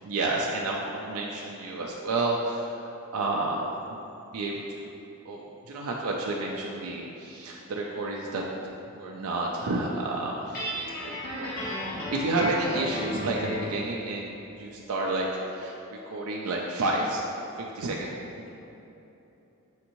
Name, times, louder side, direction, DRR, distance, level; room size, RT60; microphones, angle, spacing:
voice 1, 0.0-4.0 4.3-4.9 5.3-8.4 8.9-10.7 11.0-18.5, right 2 dB, 70° right, -2 dB, 0.4 m, -31 dB
Guitar, 10.5-13.8, left 1 dB, 45° left, 1.2 m, -33 dB
6.4 x 2.9 x 2.6 m, 3.0 s
head